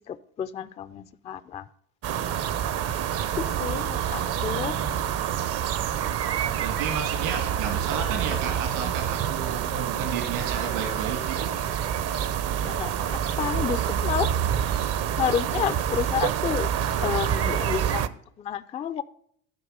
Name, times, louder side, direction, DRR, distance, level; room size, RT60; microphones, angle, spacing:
voice 1, 0.1-1.7 3.4-4.7 12.6-14.3 15.2-16.7 17.0-18.1 18.4-19.0, left 8 dB, 20° left, 14 dB, 0.3 m, -30 dB
sound 1, 2.0-18.1, right 9 dB, 40° right, 0.6 m, -27 dB
voice 2, 4.2-5.0 6.4-11.5, right 6 dB, 75° right, 6 dB, 2.0 m, -33 dB
12.0 x 4.7 x 5.0 m, 0.67 s
supercardioid pair, 90°, 38 cm